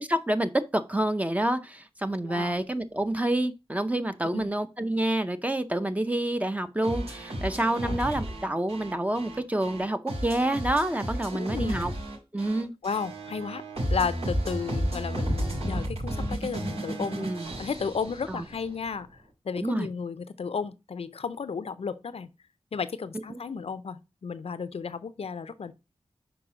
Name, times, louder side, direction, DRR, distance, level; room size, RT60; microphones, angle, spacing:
voice 1, 0.0-11.9 12.3-12.7 17.2-17.5 18.3-18.4 19.6-19.9, right 1 dB, 15° right, 0.6 m, -28 dB
voice 2, 2.2-2.6 4.3-4.5 7.8-8.0 11.3-11.9 12.8-13.6 13.9-17.3 17.6-19.1 19.4-22.3 22.7-25.7, left 5 dB, 75° left, 0.5 m, -33 dB
sound 1, 6.8-18.8, right 1 dB, 80° right, 4.2 m, -33 dB
6.0 x 4.7 x 4.9 m
wide cardioid pair, 100°, 10 cm